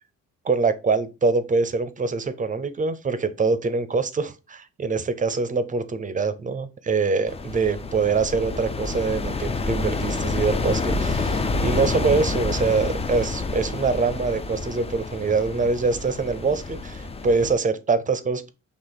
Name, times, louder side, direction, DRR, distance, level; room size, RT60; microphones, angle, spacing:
voice 1, 0.4-18.5, right 4 dB, 25° right, 12 dB, 0.6 m, -24 dB
sound 1, 7.3-17.5, left 3 dB, 20° left, 0.4 m, -28 dB
4.4 x 2.9 x 3.9 m, 0.28 s
cardioid pair, 90°, 30 cm